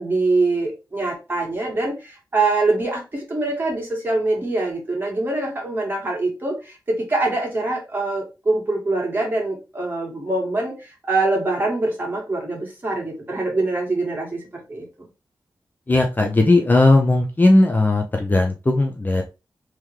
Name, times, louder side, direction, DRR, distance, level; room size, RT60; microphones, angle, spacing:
voice 1, 0.0-14.4 14.7-15.1, right 2 dB, 25° right, -1 dB, 1.8 m, -24 dB
voice 2, 15.9-19.2, left 2 dB, 25° left, 3 dB, 0.5 m, -17 dB
3.5 x 3.1 x 3.1 m, 0.28 s
wide cardioid pair, 100°, 7 cm